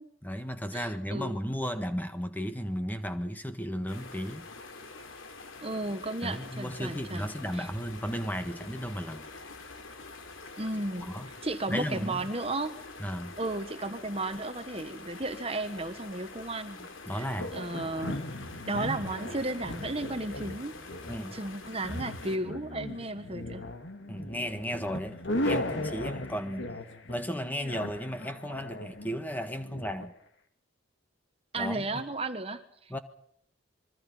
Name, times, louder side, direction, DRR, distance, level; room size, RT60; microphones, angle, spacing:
voice 1, 0.2-4.5 6.2-9.3 11.0-11.3 11.7-12.3 13.0-13.3 17.1-17.5 21.1-21.4 24.1-26.7 27.1-30.1 31.6-32.0 32.9-33.0, equal, 10° left, 1.5 m, -34 dB
voice 2, 0.7-1.4 5.6-7.3 7.5-7.7 10.6-11.1 11.4-12.8 13.4-17.3 17.5-18.2 18.7-20.8 21.3-23.7 31.5-33.0, right 2 dB, 30° right, 1.3 m, -34 dB
sound 1, 3.9-22.4, left 3 dB, 80° left, 3.5 m, -46 dB
sound 2, 17.4-30.1, left 1 dB, 65° left, 2.6 m, -37 dB
27.0 x 22.5 x 5.7 m
head